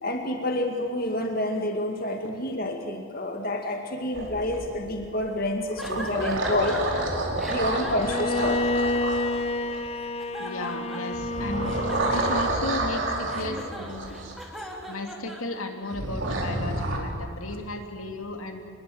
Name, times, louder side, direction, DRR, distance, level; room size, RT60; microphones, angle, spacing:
voice 1, 0.0-6.9 7.5-8.6 12.1-12.2 14.6-14.7, left 1 dB, 45° left, 3 dB, 2.1 m, -28 dB
sound 1, 4.1-5.1 5.6-9.9 11.1-14.3 15.9-17.0, right 2 dB, 65° right, 4.6 m, -29 dB
sound 2, 5.8-7.0 7.4-9.5 10.0-11.2 11.6-15.9, equal, ahead, 3.1 m, -40 dB
Bowed string instrument, 8.0-13.0, left 2 dB, 30° left, 0.8 m, -29 dB
voice 2, 10.4-11.7 12.1-14.1 14.9-18.6, left 2 dB, 85° left, 4 dB, 2.9 m, -34 dB
27.0 x 21.5 x 8.0 m, 2.4 s
head